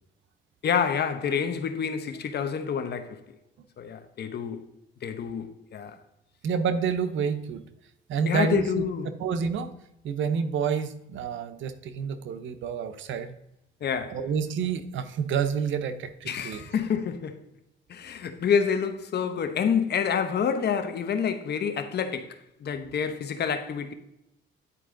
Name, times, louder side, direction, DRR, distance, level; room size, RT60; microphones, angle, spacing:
voice 1, 0.6-3.2 3.8-4.6 5.0-6.0 8.2-9.1 13.8-14.2 16.3-17.4 17.9-23.9, left 7 dB, 55° left, 1.0 m, -28 dB
voice 2, 6.4-7.6 8.1-8.8 9.2-9.7 10.0-13.3 14.1-16.6, right 6 dB, 75° right, 0.8 m, -28 dB
10.0 x 4.6 x 3.8 m
cardioid pair, 90°, 20 cm